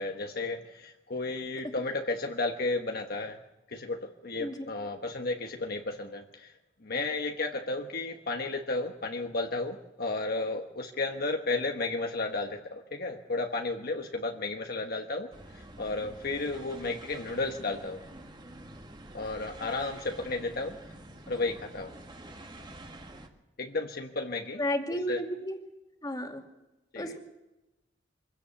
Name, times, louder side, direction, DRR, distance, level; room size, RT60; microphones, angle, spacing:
voice 1, 0.0-3.4 3.7-6.5 6.8-15.3 15.8-18.0 19.1-20.7 21.3-21.9 23.6-24.6 25.1-25.2 26.9-27.1, left 3 dB, 55° left, 4 dB, 1.3 m, -33 dB
voice 2, 4.4-4.7 24.6-25.6 26.0-26.4 26.9-27.2, equal, 20° left, 3 dB, 2.4 m, -32 dB
sound 1, 15.3-23.3, right 1 dB, 25° right, 1.8 m, -47 dB
24.0 x 16.5 x 7.1 m, 0.99 s
head